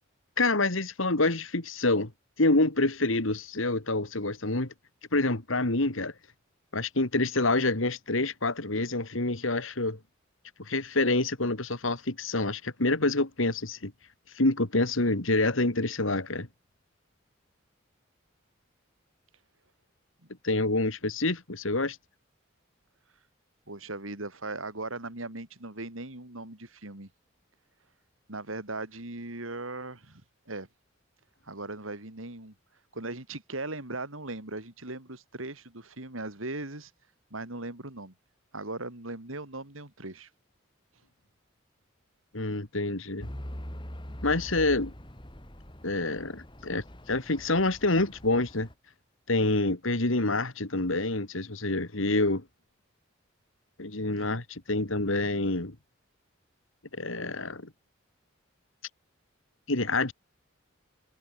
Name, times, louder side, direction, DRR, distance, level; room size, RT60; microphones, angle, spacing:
voice 1, 0.4-2.1 2.4-4.7 5.1-6.1 6.7-10.0 10.6-13.9 14.3-16.5 20.4-22.0 42.3-43.3 44.2-44.9 45.8-48.7 49.3-52.4 53.8-55.8 56.9-57.7 59.7-60.1, left 2 dB, 80° left, 2.5 m, -27 dB
voice 2, 23.7-27.1 28.3-30.2 30.5-30.7 31.4-32.5 32.9-36.9 37.3-38.1 38.5-40.3 54.2-54.3, right 2 dB, 85° right, 4.2 m, -38 dB
Truck / Idling, 43.2-48.7, equal, 25° left, 2.9 m, -43 dB
head